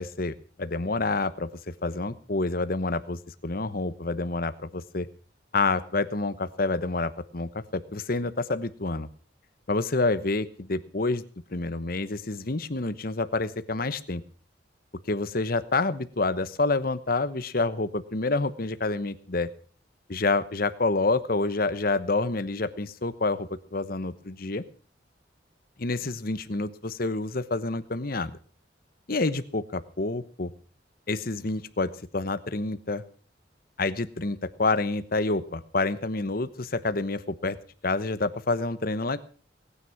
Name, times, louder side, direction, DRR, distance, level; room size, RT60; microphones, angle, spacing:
voice 1, 0.0-5.1 5.5-9.1 9.7-11.2 11.5-14.2 15.1-19.5 20.1-24.6 25.8-28.4 29.1-30.5 31.1-33.0 33.8-37.6 37.8-39.2, left 3 dB, 50° left, 13 dB, 1.1 m, -28 dB
19.0 x 9.8 x 6.0 m, 0.43 s
head